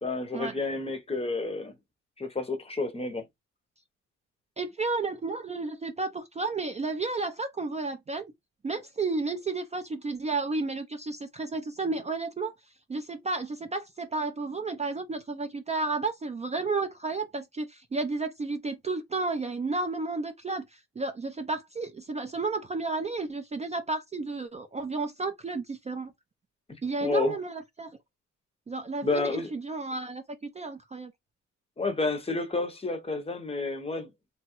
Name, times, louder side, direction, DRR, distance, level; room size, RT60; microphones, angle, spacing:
voice 1, 0.0-1.7 2.2-3.2 27.0-27.4 29.0-29.5 31.8-34.1, left 3 dB, 20° left, 0.7 m, -30 dB
voice 2, 4.6-8.3 8.6-12.5 12.9-26.1 26.8-27.9 28.7-31.1, right 3 dB, 25° right, 0.4 m, -32 dB
3.0 x 2.2 x 2.9 m
cardioid pair, 90°, 30 cm